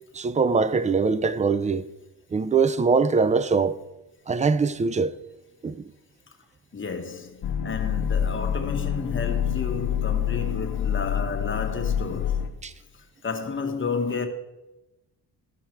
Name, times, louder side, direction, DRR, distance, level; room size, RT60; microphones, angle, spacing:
voice 1, 0.1-1.8 2.3-3.8 4.3-5.1 5.6-5.8 12.6-12.7, right 5 dB, 20° right, 0.4 m, -22 dB
voice 2, 6.7-12.5 12.9-14.3, left 4 dB, 30° left, 1.4 m, -31 dB
sound 1, 7.4-12.5, left 9 dB, 55° left, 0.9 m, -27 dB
13.5 x 5.6 x 4.5 m
cardioid pair, 85°, 40 cm